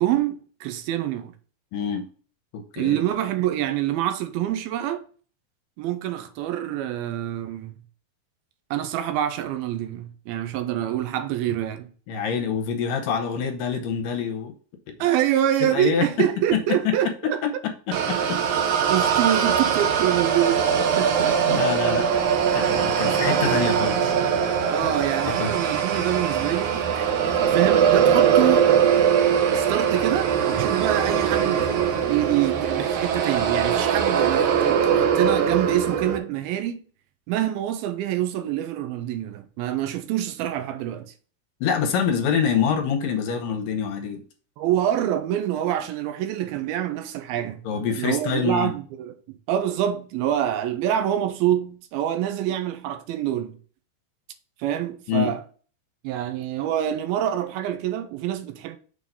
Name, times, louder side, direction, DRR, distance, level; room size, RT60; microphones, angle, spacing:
voice 1, 0.0-1.3 2.8-5.0 5.8-7.8 8.7-11.9 15.0-17.4 18.9-21.6 24.7-28.7 29.5-31.7 32.1-36.8 37.3-41.1 44.6-47.6 48.0-53.6 54.6-55.4 56.0-58.8, right 12 dB, 90° right, 2.6 m, -26 dB
voice 2, 1.7-2.0 2.5-3.0 12.1-14.5 15.6-16.1 16.5-16.6 16.9-17.0 17.9-18.4 21.5-22.1 22.5-24.1 25.3-25.5 41.6-44.2 47.6-48.7 55.1-55.3, left 6 dB, 70° left, 2.3 m, -25 dB
sound 1, 17.9-36.2, right 8 dB, 70° right, 2.0 m, -21 dB
6.5 x 3.9 x 5.4 m
omnidirectional pair, 4.2 m